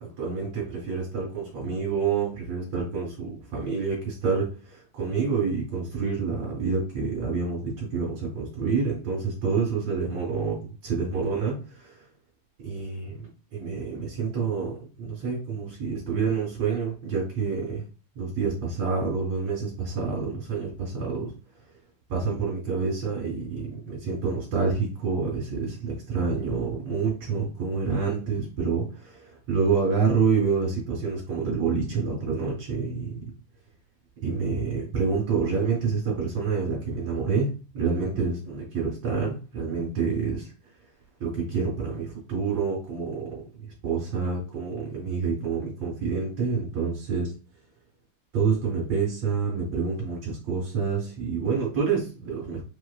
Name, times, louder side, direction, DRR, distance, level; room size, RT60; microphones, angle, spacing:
voice 1, 0.0-11.6 12.6-17.9 18.2-21.3 22.1-33.2 34.2-40.5 41.2-43.4 43.8-47.3 48.3-52.6, right 5 dB, 60° right, -5 dB, 2.2 m, -28 dB
5.5 x 2.0 x 2.2 m, 0.34 s
omnidirectional pair, 3.8 m